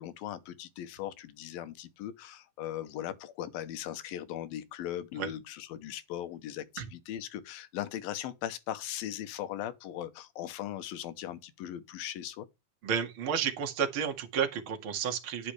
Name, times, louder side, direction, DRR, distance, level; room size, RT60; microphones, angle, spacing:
voice 1, 0.0-12.5, left 12 dB, 75° left, 2.8 m, -39 dB
voice 2, 12.8-15.5, right 7 dB, 40° right, 2.2 m, -31 dB
10.0 x 9.9 x 3.4 m
omnidirectional pair, 4.4 m